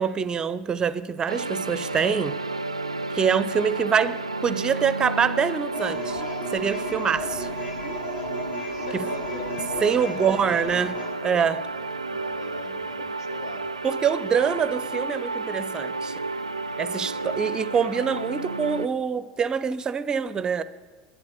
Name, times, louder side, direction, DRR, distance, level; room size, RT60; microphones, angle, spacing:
voice 1, 0.0-2.3 3.1-6.2 6.5-7.5 8.9-9.0 9.8-10.9 11.2-11.6 13.8-16.1 16.8-20.6, right 7 dB, 25° right, 0.5 m, -25 dB
sound 1, 1.3-18.9, right 3 dB, 85° right, 0.3 m, -32 dB
sound 2, 5.7-11.1, left 1 dB, 35° left, 4.9 m, -35 dB
voice 2, 8.7-10.8 11.7-13.6 14.3-14.6 16.9-17.6, left 2 dB, 70° left, 1.3 m, -41 dB
11.5 x 10.0 x 6.8 m
figure-of-eight pair, 70°, 3 cm